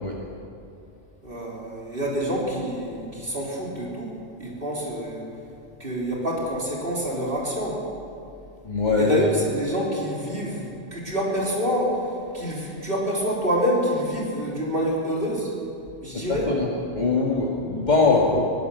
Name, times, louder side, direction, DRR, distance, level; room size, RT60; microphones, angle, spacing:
voice 1, 1.2-5.2 5.8-7.8 9.0-12.0 12.3-15.5 16.0-16.5, equal, 50° right, -3 dB, 3.7 m, -27 dB
voice 2, 8.6-9.2 16.5-16.7 16.9-18.4, left 3 dB, 35° left, -4 dB, 2.4 m, -21 dB
22.0 x 18.0 x 7.0 m, 2.6 s
omnidirectional pair, 1.2 m